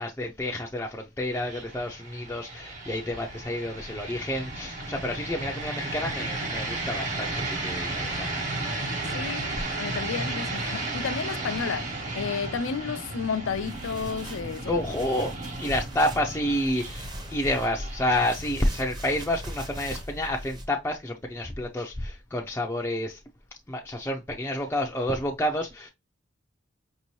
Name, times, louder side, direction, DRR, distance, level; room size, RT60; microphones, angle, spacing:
voice 1, 0.0-8.3 14.6-15.3 15.6-23.2 23.7-25.9, left 1 dB, 10° left, 0.4 m, -29 dB
sound 1, 1.3-20.3, right 2 dB, 40° right, 1.1 m, -34 dB
voice 2, 9.1-9.5 9.8-14.8, left 6 dB, 85° left, 0.4 m, -32 dB
sound 2, 13.5-20.7, equal, 20° right, 0.7 m, -40 dB
5.2 x 2.7 x 3.0 m
head